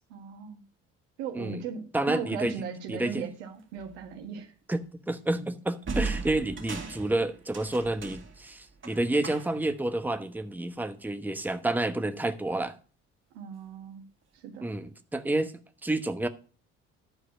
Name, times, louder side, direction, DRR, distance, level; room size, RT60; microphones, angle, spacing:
voice 1, 0.1-0.6 1.2-4.5 13.3-14.0 14.3-14.7, right 7 dB, 85° right, 1.6 m, -38 dB
voice 2, 1.9-2.5 2.9-3.2 4.7-12.7 14.6-15.5 15.8-16.3, right 2 dB, 5° right, 1.1 m, -29 dB
sound 1, 3.8-4.0 5.8-9.8, right 4 dB, 35° right, 2.5 m, -37 dB
11.5 x 4.8 x 6.3 m
hypercardioid pair, 55°, 33 cm